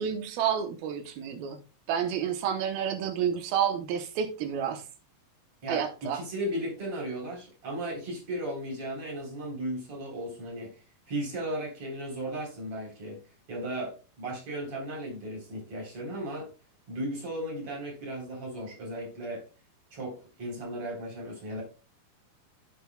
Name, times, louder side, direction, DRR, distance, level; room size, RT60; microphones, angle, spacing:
voice 1, 0.0-1.6 1.9-4.8 5.7-6.2, right 8 dB, 85° right, 2.8 m, -30 dB
voice 2, 5.6-10.8 11.1-13.2 13.5-16.5 16.9-19.4 19.9-21.6, right 1 dB, 40° right, 4.5 m, -36 dB
16.0 x 5.7 x 2.3 m
omnidirectional pair, 4.2 m